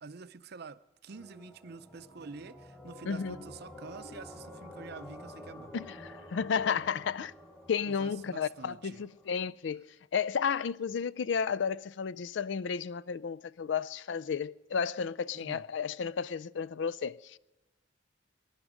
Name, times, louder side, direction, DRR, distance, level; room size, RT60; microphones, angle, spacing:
voice 1, 0.0-5.7 7.8-9.1 15.3-15.7, right 4 dB, 55° right, 0.6 m, -47 dB
sound 1, 1.1-9.4, left 1 dB, 15° left, 1.9 m, -50 dB
voice 2, 3.1-3.4 5.7-7.3 7.7-17.4, left 6 dB, 70° left, 0.4 m, -33 dB
20.5 x 11.5 x 5.0 m
head